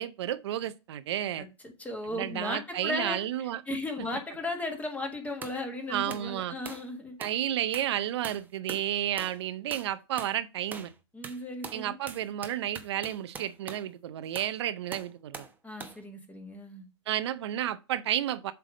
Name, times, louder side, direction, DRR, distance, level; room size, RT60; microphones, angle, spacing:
voice 1, 0.0-1.5 2.1-3.6 5.9-6.5 7.2-10.9 11.7-15.5 17.1-18.5, right 12 dB, 65° right, 0.6 m, -32 dB
voice 2, 1.8-7.2 11.1-11.9 15.6-16.8, left 2 dB, 10° left, 1.5 m, -36 dB
sound 1, 5.4-5.6 6.1-6.3 6.7-6.9 7.2-7.4 7.7-8.0 8.2-8.9 9.2-9.4 9.7-9.9 10.2-10.4 10.7-11.0 11.2-13.9 14.4-14.6 14.9-15.5 15.8-16.0, right 4 dB, 10° right, 0.9 m, -43 dB
7.6 x 3.4 x 5.0 m
hypercardioid pair, 120°, 15 cm